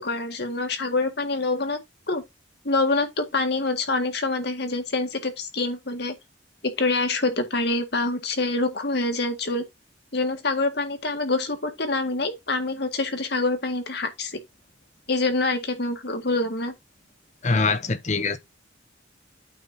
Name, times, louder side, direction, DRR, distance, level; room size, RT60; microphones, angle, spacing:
voice 1, 0.0-1.8 2.1-2.2 2.6-6.1 6.6-9.6 10.1-14.4 15.1-16.7, left 3 dB, 60° left, 1.9 m, -26 dB
voice 2, 17.4-18.4, left 3 dB, 40° left, 0.9 m, -23 dB
8.9 x 4.2 x 5.5 m
head